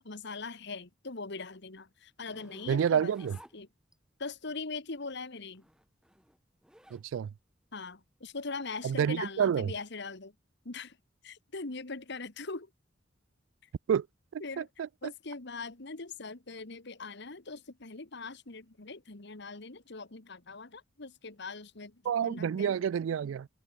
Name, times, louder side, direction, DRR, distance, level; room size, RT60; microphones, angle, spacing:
voice 1, 0.0-3.7 4.2-5.6 7.7-10.3 10.6-11.0 11.2-12.7 14.4-14.7 15.0-22.8, left 3 dB, 60° left, 1.7 m, -41 dB
Zipper (clothing), 2.2-4.2 5.4-7.1 7.5-9.9, equal, 5° right, 4.4 m, -57 dB
voice 2, 2.7-3.4 6.9-7.3 8.8-9.7 13.9-14.1 14.3-14.9 22.1-23.5, right 8 dB, 80° right, 0.3 m, -29 dB
head